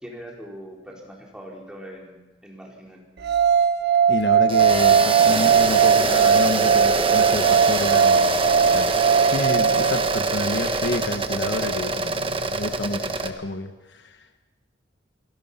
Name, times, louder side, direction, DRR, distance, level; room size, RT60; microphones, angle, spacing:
voice 1, 0.0-3.0, equal, 5° right, -2 dB, 4.4 m, -41 dB
sound 1, 3.2-10.3, right 7 dB, 60° right, 1.0 m, -19 dB
voice 2, 4.1-8.9 9.3-14.5, left 2 dB, 65° left, 7 dB, 1.3 m, -29 dB
sound 2, 4.5-13.3, right 2 dB, 30° right, 1.3 m, -24 dB
28.0 x 17.0 x 5.7 m, 1.1 s
head